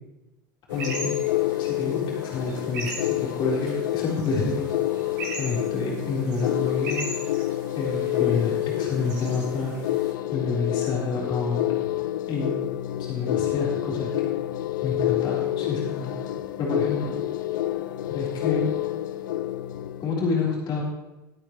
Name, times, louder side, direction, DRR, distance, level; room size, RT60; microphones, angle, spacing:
sound 1, 0.7-20.1, left 14 dB, 65° left, 0.6 m, -28 dB
voice 1, 0.7-1.2 1.6-4.7 5.4-7.1 7.7-9.7 10.3-11.7 12.3-12.5 13.1-14.3 14.8-16.1 16.6-17.1 18.1-18.7 20.0-20.8, left 4 dB, 40° left, -4 dB, 4.0 m, -28 dB
sound 2, 0.7-10.1, right 2 dB, 65° right, 5.1 m, -39 dB
19.0 x 9.0 x 3.2 m, 1.0 s
figure-of-eight pair, 75°, 11 cm